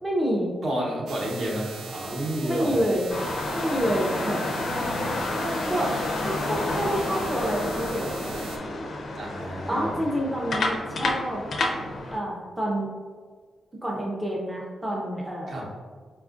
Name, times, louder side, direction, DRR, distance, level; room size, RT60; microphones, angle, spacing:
voice 1, 0.0-0.5 2.1-3.1 3.5-4.4 5.7-5.9 6.2-8.1 9.7-11.4 12.1-12.9 13.8-15.7, equal, 10° right, -2 dB, 0.4 m, -28 dB
voice 2, 0.6-2.8 9.1-10.0 15.5-15.7, right 1 dB, 60° right, -3 dB, 0.8 m, -30 dB
sound 1, 1.1-8.6, right 4 dB, 90° right, 0.4 m, -40 dB
sound 2, 3.1-12.2, left 2 dB, 55° left, 0.4 m, -30 dB
4.2 x 2.3 x 2.4 m, 1.5 s
wide cardioid pair, 140°, 0 cm